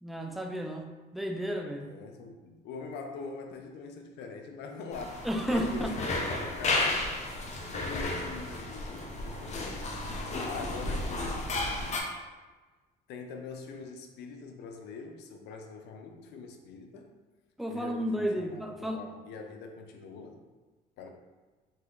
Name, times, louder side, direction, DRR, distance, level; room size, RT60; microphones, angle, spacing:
voice 1, 0.0-1.9 5.2-5.9 17.6-19.0, equal, ahead, 2 dB, 0.4 m, -32 dB
voice 2, 1.8-6.0 6.2-7.1 7.7-9.9 10.4-12.1 13.1-17.1 17.7-20.4 21.0-21.1, left 4 dB, 80° left, 4 dB, 0.6 m, -43 dB
sound 1, 4.9-12.0, left 2 dB, 40° left, 0.7 m, -33 dB
4.0 x 2.8 x 3.9 m, 1.3 s
cardioid pair, 110°, 17 cm